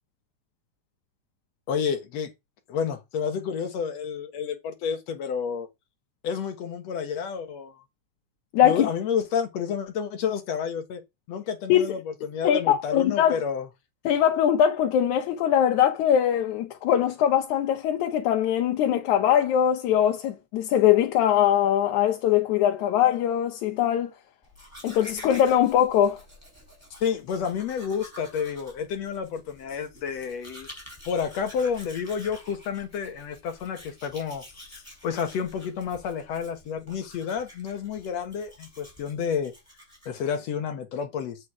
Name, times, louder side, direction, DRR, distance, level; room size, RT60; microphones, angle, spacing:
voice 1, 1.7-2.3 2.7-5.7 6.2-7.8 8.6-11.0 11.3-13.7 27.0-30.7 31.1-34.4 35.0-39.5 40.1-41.4, left 7 dB, 65° left, 2.6 m, -30 dB
voice 2, 8.5-8.9 11.7-12.0 12.4-13.4 14.1-24.1 24.8-26.2, left 10 dB, 85° left, 2.4 m, -22 dB
Domestic sounds home sounds, 24.4-40.5, left 1 dB, 5° left, 4.8 m, -49 dB
8.5 x 5.3 x 4.9 m
omnidirectional pair, 3.3 m